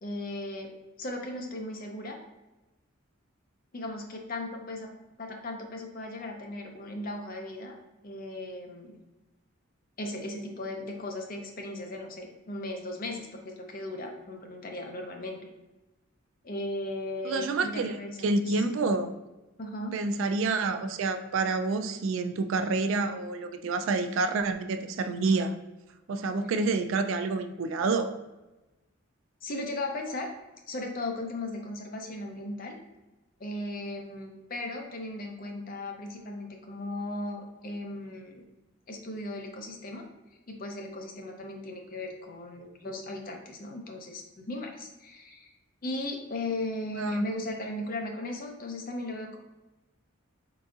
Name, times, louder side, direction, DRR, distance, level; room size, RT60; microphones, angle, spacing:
voice 1, 0.0-0.7 1.0-2.2 3.7-4.9 5.2-9.0 10.0-15.4 16.4-18.6 19.6-20.0 29.4-30.3 30.7-32.8 33.4-38.4 38.9-40.0 40.5-44.2 44.5-45.5 45.8-49.4, left 1 dB, 45° left, 2 dB, 0.6 m, -37 dB
voice 2, 17.2-18.0 18.2-19.1 19.9-25.5 26.1-28.1 47.0-47.2, right 3 dB, 70° right, 8 dB, 0.3 m, -28 dB
4.0 x 3.7 x 2.3 m, 1.1 s
head